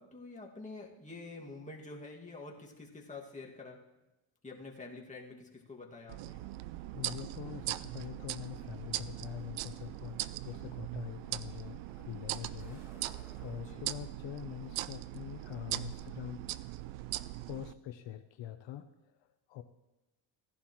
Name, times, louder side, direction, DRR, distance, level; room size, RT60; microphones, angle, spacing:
voice 1, 0.0-3.8 4.4-6.4 13.7-13.8, left 3 dB, 15° left, -2 dB, 2.0 m, -47 dB
sound 1, 6.1-17.7, right 16 dB, 85° right, 0.5 m, -40 dB
voice 2, 6.8-16.4 17.5-19.6, left 12 dB, 70° left, 8 dB, 0.8 m, -44 dB
Truck, 6.9-15.7, equal, 5° right, 2.2 m, -60 dB
16.0 x 11.0 x 3.1 m, 1.0 s
cardioid pair, 100°, 46 cm